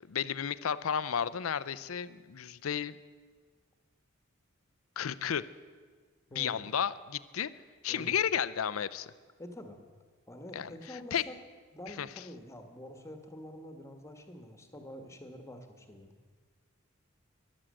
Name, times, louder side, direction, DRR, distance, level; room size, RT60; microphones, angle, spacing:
voice 1, 0.1-3.0 5.0-5.5 6.3-7.5 7.8-9.1 10.5-11.2 11.9-12.1, left 8 dB, 85° left, 16 dB, 0.5 m, -33 dB
voice 2, 6.3-6.7 7.9-8.2 9.4-9.8 10.3-11.4 11.7-16.1, left 1 dB, 15° left, 6 dB, 1.4 m, -47 dB
13.5 x 11.5 x 7.6 m, 1.5 s
head